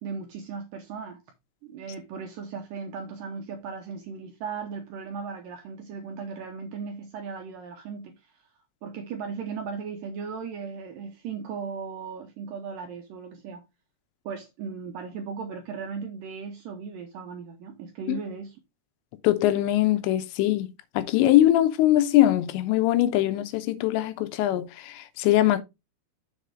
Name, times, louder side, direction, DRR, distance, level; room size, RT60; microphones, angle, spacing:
voice 1, 0.0-1.2 1.6-8.2 8.8-13.6 14.3-18.6, right 5 dB, 80° right, 2.0 m, -37 dB
voice 2, 19.2-20.7 20.9-25.6, left 14 dB, 90° left, 3.1 m, -22 dB
7.1 x 4.2 x 4.9 m
omnidirectional pair, 5.0 m